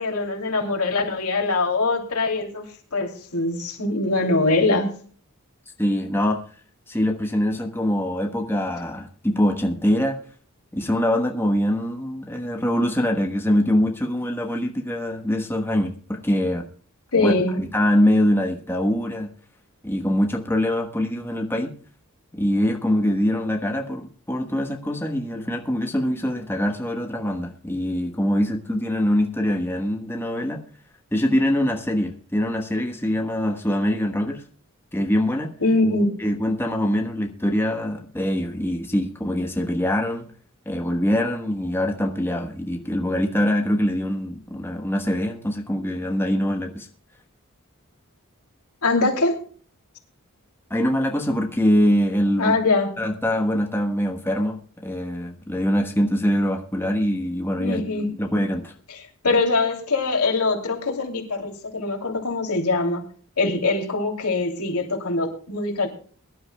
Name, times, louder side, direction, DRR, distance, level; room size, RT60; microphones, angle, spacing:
voice 1, 0.0-2.7 2.9-4.9 17.1-17.6 35.6-36.2 48.8-49.4 52.4-52.9 57.6-58.2 58.9-63.0 63.4-65.9, left 3 dB, 85° left, 2 dB, 2.8 m, -23 dB
voice 2, 5.8-6.4 6.9-10.2 10.7-16.7 17.2-19.3 19.8-21.8 22.3-30.6 31.1-34.4 34.9-35.5 36.2-40.3 40.6-46.9 50.7-52.5 53.0-57.8 58.2-58.7, equal, 10° left, 2 dB, 1.2 m, -23 dB
23.0 x 11.5 x 2.3 m, 0.43 s
head